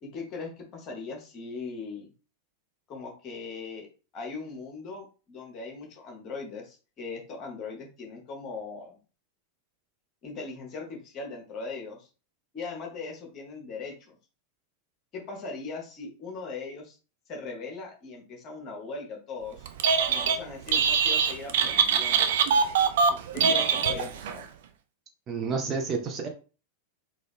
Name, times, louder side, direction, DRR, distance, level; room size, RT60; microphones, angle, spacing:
voice 1, 0.0-2.1 2.9-3.9 4.1-9.0 10.2-12.1 12.5-14.2 15.1-17.0 17.3-19.7 20.1-22.4 23.3-24.4, left 4 dB, 35° left, 1 dB, 1.3 m, -39 dB
Telephone, 19.7-20.4 20.7-24.4, right 6 dB, 55° right, 0.4 m, -23 dB
voice 2, 25.3-26.3, right 5 dB, 30° right, 3 dB, 0.7 m, -30 dB
3.8 x 2.6 x 3.5 m, 0.34 s
figure-of-eight pair, 90°, 0 cm